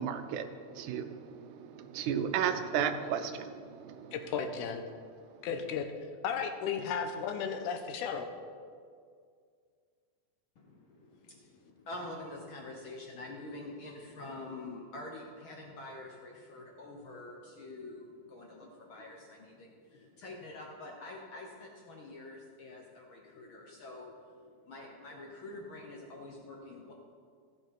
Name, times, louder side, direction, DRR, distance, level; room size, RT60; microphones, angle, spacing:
voice 1, 0.0-4.1, right 8 dB, 85° right, 8 dB, 2.2 m, -34 dB
voice 2, 4.1-4.8 5.4-5.9 6.2-8.3, left 6 dB, 85° left, 7 dB, 2.3 m, -34 dB
voice 3, 10.6-26.9, left 2 dB, 65° left, 0 dB, 1.3 m, -46 dB
15.0 x 7.2 x 4.6 m, 2.1 s
omnidirectional pair, 3.5 m